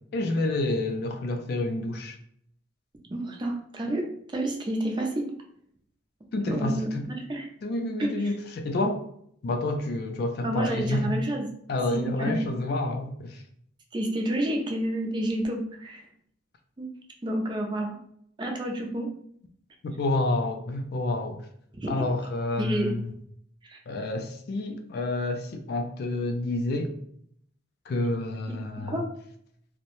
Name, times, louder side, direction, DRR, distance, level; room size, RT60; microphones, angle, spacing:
voice 1, 0.1-2.1 6.3-7.1 7.6-9.0 9.4-11.1 11.7-13.4 19.8-21.4 21.9-23.1 23.9-27.0 27.9-29.0, left 2 dB, 55° left, 0.3 m, -29 dB
voice 2, 3.1-4.1 4.3-5.3 6.5-7.5 8.0-8.3 10.4-11.5 11.9-12.5 13.9-16.1 16.8-16.9 17.2-18.0 18.4-19.1 21.8-21.9 22.6-23.0 23.6-23.8 28.9-29.0, right 1 dB, 25° right, 0.4 m, -29 dB
2.6 x 2.0 x 2.9 m
head